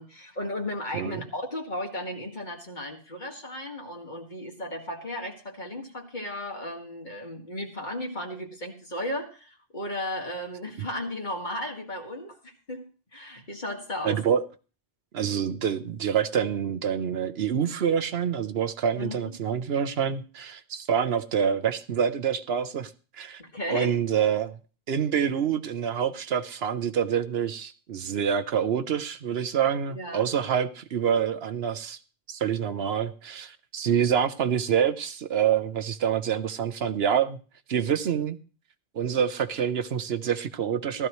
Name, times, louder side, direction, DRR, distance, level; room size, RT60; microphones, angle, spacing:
voice 1, 0.0-14.2 19.0-19.3 23.4-24.0 30.0-30.3, left 1 dB, 45° left, 2.1 m, -35 dB
voice 2, 14.0-14.4 15.1-23.4 23.7-24.5 24.9-32.0 32.3-37.4 37.7-38.4 38.9-41.1, right 8 dB, 75° right, 1.0 m, -26 dB
15.5 x 13.5 x 3.1 m
omnidirectional pair, 1.1 m